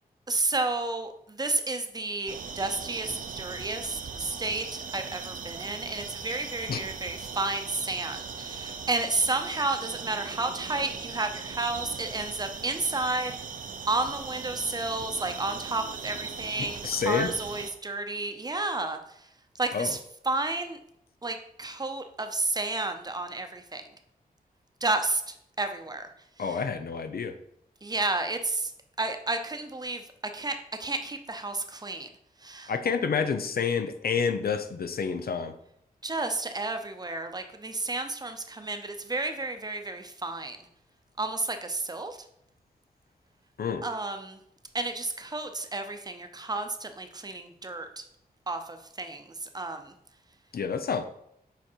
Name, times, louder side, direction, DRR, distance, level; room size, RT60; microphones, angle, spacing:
voice 1, 0.3-13.4 13.9-19.0 19.6-20.0 20.2-20.8 21.2-23.8 24.8-26.1 26.4-26.6 27.8-28.7 29.0-30.0 30.3-32.1 32.4-32.7 36.0-40.6 41.2-42.2 43.8-44.4 44.7-48.0 48.5-49.9, right 2 dB, 25° right, 0.7 m, -31 dB
sound 1, 2.3-17.7, right 5 dB, 60° right, 0.7 m, -39 dB
voice 2, 16.6-17.3 19.7-19.9 26.4-27.3 32.7-35.5 43.6-43.9 50.5-51.0, left 6 dB, 75° left, 0.7 m, -29 dB
7.3 x 5.1 x 4.5 m
wide cardioid pair, 145°, 16 cm